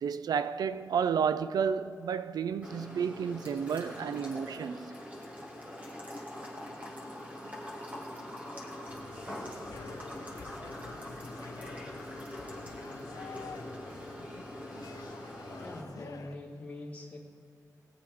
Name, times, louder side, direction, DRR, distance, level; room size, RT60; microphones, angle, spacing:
voice 1, 0.0-5.0, right 7 dB, 85° right, 0.4 m, -31 dB
sound 1, 2.6-15.8, left 1 dB, 25° right, 2.3 m, -43 dB
sound 2, 8.9-16.4, left 5 dB, 70° left, 0.7 m, -48 dB
voice 2, 15.6-17.2, left 2 dB, 20° left, 2.4 m, -44 dB
20.0 x 8.5 x 5.0 m
wide cardioid pair, 120°, 6 cm